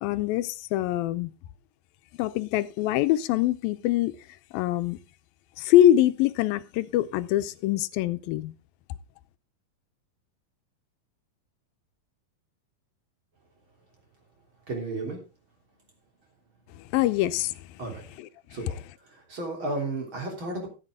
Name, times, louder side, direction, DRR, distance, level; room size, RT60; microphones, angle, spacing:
voice 1, 0.0-1.3 2.2-4.2 4.5-5.0 5.6-8.5 16.8-17.6 18.2-18.3, left 13 dB, 90° left, 2.5 m, -24 dB
voice 2, 14.7-15.2 17.8-18.0 18.5-18.8 19.1-20.7, right 2 dB, 35° right, 3.9 m, -33 dB
14.0 x 8.7 x 3.7 m
omnidirectional pair, 4.1 m